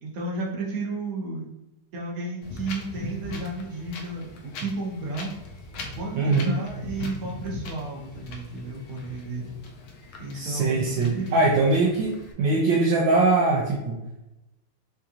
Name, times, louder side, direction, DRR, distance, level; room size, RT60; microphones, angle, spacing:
voice 1, 0.0-1.5 1.9-5.3 6.0-9.5 10.2-11.6, right 2 dB, 50° right, -2 dB, 1.3 m, -33 dB
Wind, 2.4-12.3, left 2 dB, 90° left, 1.5 m, -40 dB
voice 2, 6.2-6.5 10.3-14.0, right 3 dB, 75° right, -1 dB, 1.3 m, -22 dB
5.9 x 2.6 x 2.9 m, 0.92 s
omnidirectional pair, 2.2 m